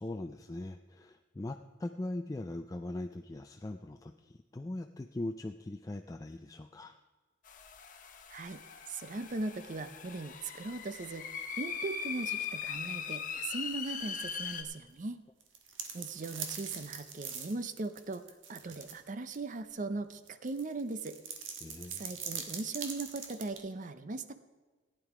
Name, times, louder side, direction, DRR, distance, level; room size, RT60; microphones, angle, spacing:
voice 1, 0.0-7.0 21.6-22.1, left 1 dB, 20° left, 5 dB, 0.3 m, -40 dB
sound 1, 7.5-14.6, left 6 dB, 45° left, 1.0 m, -40 dB
voice 2, 8.9-11.3 11.6-15.2 15.9-18.2 18.5-21.2 21.9-24.3, right 3 dB, 40° right, 11 dB, 0.6 m, -39 dB
sound 2, 15.4-19.0 19.3-19.4 20.3-23.6, right 6 dB, 85° right, 1.4 m, -42 dB
14.5 x 9.2 x 4.9 m, 1.3 s
head